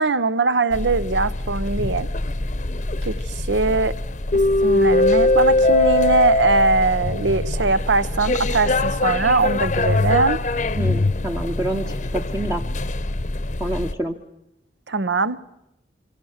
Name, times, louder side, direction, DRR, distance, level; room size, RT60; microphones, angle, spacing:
voice 1, 0.0-2.1 3.0-3.9 4.6-10.4 14.9-15.4, right 3 dB, 75° right, 0.8 m, -21 dB
sound 1, 0.7-13.9, left 2 dB, 40° left, 0.8 m, -22 dB
voice 2, 10.7-12.6 13.6-14.2, right 1 dB, 15° right, 0.8 m, -27 dB
27.0 x 23.5 x 6.5 m
head